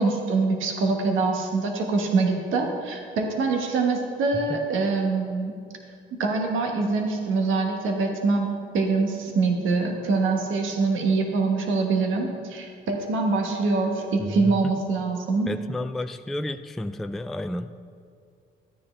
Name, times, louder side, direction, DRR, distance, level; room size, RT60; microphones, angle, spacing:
voice 1, 0.0-5.5 6.2-8.5 8.7-15.5, right 3 dB, 80° right, 2 dB, 1.3 m, -24 dB
voice 2, 14.2-14.6 15.5-17.7, left 1 dB, ahead, 9 dB, 0.3 m, -31 dB
13.0 x 9.8 x 3.3 m, 2.4 s
cardioid pair, 90°, 20 cm